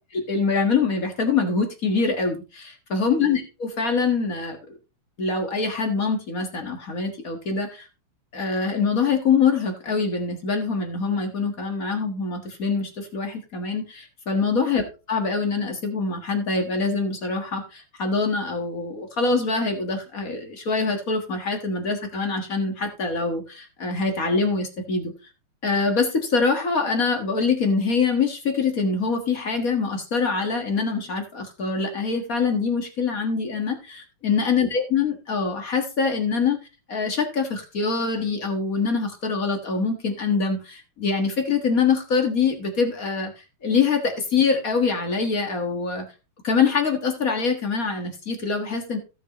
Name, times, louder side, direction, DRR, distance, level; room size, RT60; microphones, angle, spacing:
voice 1, 0.1-4.6 5.2-7.9 8.3-25.1 25.6-36.6 36.9-46.0 46.4-49.0, left 4 dB, 40° left, 4 dB, 1.4 m, -24 dB
16.5 x 6.6 x 2.9 m, 0.30 s
omnidirectional pair, 3.4 m